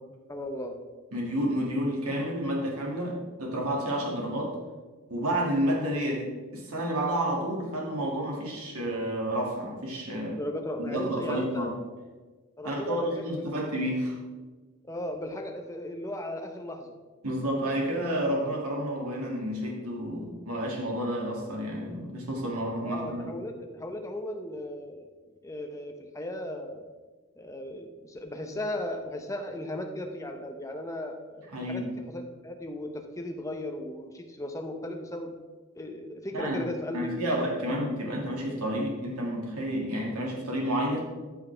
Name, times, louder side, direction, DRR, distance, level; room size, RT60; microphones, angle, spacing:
voice 1, 0.3-0.8 10.4-11.7 12.6-13.5 14.8-16.9 22.8-25.1 25.4-26.9 27.4-35.4 35.7-37.4, left 1 dB, 15° left, 4 dB, 0.8 m, -36 dB
voice 2, 1.1-4.6 5.1-10.4 10.8-11.7 12.6-14.2 17.2-23.3 31.5-31.9 36.3-36.7 36.9-41.0, equal, 75° right, -2 dB, 2.3 m, -30 dB
13.5 x 5.8 x 3.4 m, 1.3 s
head